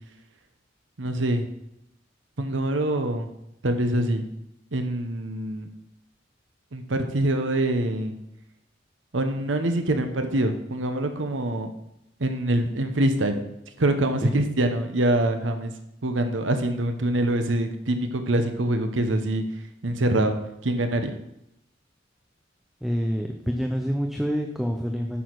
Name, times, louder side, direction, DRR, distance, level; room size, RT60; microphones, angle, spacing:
voice 1, 1.0-1.5 2.4-3.3 3.6-4.2 4.7-5.7 6.7-8.1 9.1-11.7 12.2-13.4 13.8-15.7 16.0-19.4 19.8-20.3 20.6-21.1, right 1 dB, 85° right, 7 dB, 0.9 m, -24 dB
voice 2, 22.8-25.2, equal, ahead, 2 dB, 0.6 m, -27 dB
9.0 x 6.3 x 4.6 m, 0.82 s
head